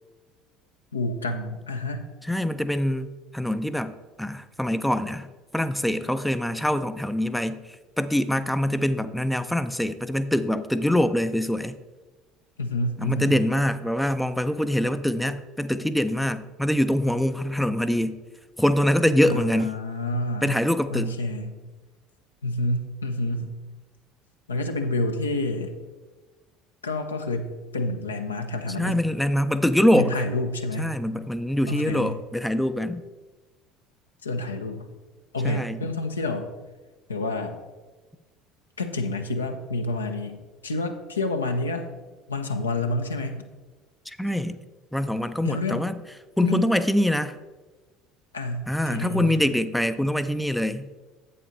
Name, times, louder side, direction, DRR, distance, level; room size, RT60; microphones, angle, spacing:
voice 1, 0.9-2.0 12.6-13.4 19.3-20.6 20.9-21.6 22.4-23.5 24.5-25.7 26.8-29.0 29.9-31.0 31.7-32.2 34.2-34.9 35.3-36.5 37.1-37.6 38.8-40.4 40.6-41.9 42.3-43.5 45.4-45.9 46.4-46.7 48.3-49.4, left 2 dB, 80° left, 5 dB, 0.7 m, -28 dB
voice 2, 2.3-5.3 5.5-7.6 8.0-11.8 13.0-18.2 18.6-19.8 20.4-21.1 28.8-30.2 30.8-33.0 35.4-35.8 44.1-44.6 44.9-46.0 46.4-47.4 48.7-50.9, left 1 dB, 5° left, 12 dB, 0.4 m, -24 dB
8.1 x 7.7 x 4.0 m, 1.2 s
figure-of-eight pair, 65°, 0 cm